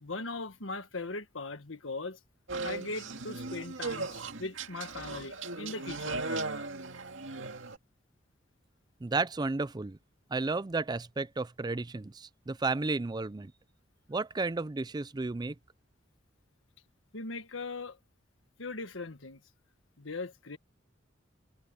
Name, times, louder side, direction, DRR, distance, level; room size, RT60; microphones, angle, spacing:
voice 1, 0.0-2.2 2.6-6.2 17.1-18.0 18.6-19.4 20.0-20.6, left 3 dB, 85° left, 1.7 m, -39 dB
sound 1, 2.5-7.8, right 3 dB, 80° right, 2.2 m, -37 dB
voice 2, 9.0-10.0 10.3-13.5 14.1-15.6, right 3 dB, 20° right, 0.5 m, -32 dB
head